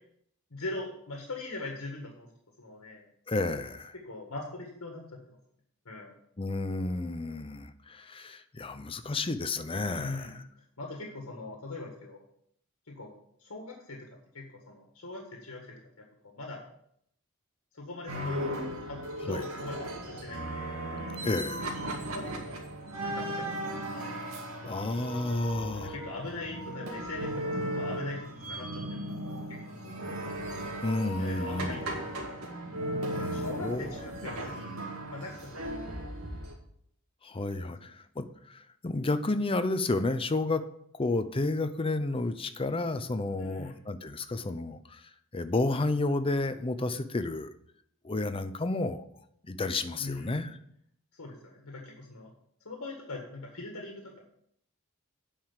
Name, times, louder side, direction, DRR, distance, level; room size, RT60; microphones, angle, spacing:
voice 1, 0.5-2.3 2.6-3.1 3.9-5.4 5.8-6.1 9.9-10.3 10.8-12.2 12.8-13.1 13.4-14.1 14.3-16.6 17.7-18.5 18.8-20.7 21.9-22.6 23.0-23.5 24.6-24.9 25.7-29.0 29.5-30.0 31.2-32.3 33.2-34.7 35.1-35.9 37.6-37.9 43.4-43.8 50.0-50.5 51.1-52.3 52.6-54.2, left 2 dB, 85° left, 0 dB, 1.7 m, -41 dB
voice 2, 3.3-3.9 6.4-10.3 19.3-19.4 21.2-21.8 24.7-25.9 30.8-31.8 33.1-33.9 37.2-40.6 41.0-45.0 45.3-47.5 48.0-49.0 49.4-50.6, left 2 dB, 25° left, 10 dB, 0.6 m, -31 dB
sound 1, 18.1-36.5, right 1 dB, 85° right, 2.2 m, -36 dB
9.0 x 5.0 x 7.3 m, 0.70 s
head